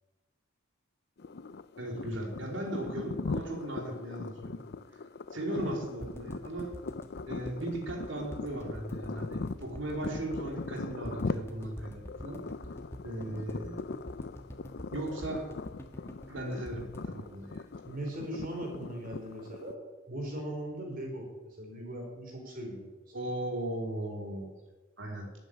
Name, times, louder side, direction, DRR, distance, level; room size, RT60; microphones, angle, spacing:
sound 1, 1.2-19.7, left 3 dB, 50° left, 0.5 m, -40 dB
voice 1, 1.8-4.6 5.3-6.7 7.3-12.4 13.0-13.8 14.9-15.5 16.3-17.6 23.1-24.5 25.0-25.3, right 1 dB, 60° right, 2 dB, 3.0 m, -37 dB
sound 2, 6.0-18.2 18.5-18.6 18.8-18.9, equal, 10° left, 1.4 m, -46 dB
voice 2, 17.8-19.8 20.1-21.3 21.6-22.9, right 1 dB, 45° right, 1 dB, 4.8 m, -39 dB
12.5 x 9.1 x 9.6 m, 1.2 s
head